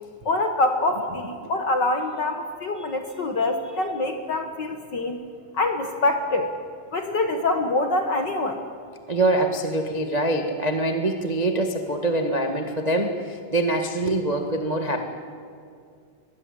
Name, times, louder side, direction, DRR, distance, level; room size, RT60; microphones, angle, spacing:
voice 1, 0.2-5.2 5.5-6.5 6.9-8.6, left 2 dB, 50° left, 6 dB, 1.4 m, -25 dB
voice 2, 9.1-15.0, right 2 dB, 65° right, 4 dB, 0.4 m, -24 dB
22.5 x 21.0 x 8.3 m, 2.3 s
omnidirectional pair, 3.8 m